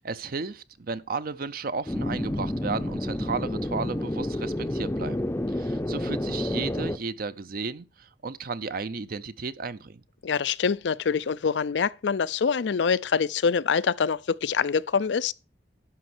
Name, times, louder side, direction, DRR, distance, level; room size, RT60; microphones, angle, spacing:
voice 1, 0.0-5.3 5.6-10.0, right 4 dB, 55° right, 0.6 m, -34 dB
sound 1, 1.9-7.0, left 1 dB, 15° left, 0.6 m, -29 dB
voice 2, 10.2-15.3, left 6 dB, 85° left, 0.5 m, -25 dB
11.5 x 5.2 x 6.1 m
head